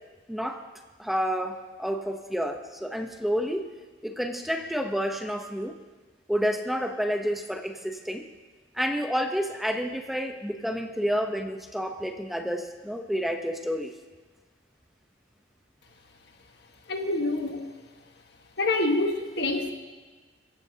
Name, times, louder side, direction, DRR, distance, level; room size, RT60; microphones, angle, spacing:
voice 1, 0.3-0.6 1.0-3.7 4.0-5.7 6.3-8.2 8.7-13.9, equal, ahead, 4 dB, 0.9 m, -29 dB
voice 2, 16.9-17.7 18.6-19.7, left 2 dB, 65° left, 3 dB, 1.6 m, -26 dB
27.5 x 15.5 x 2.9 m, 1.3 s
head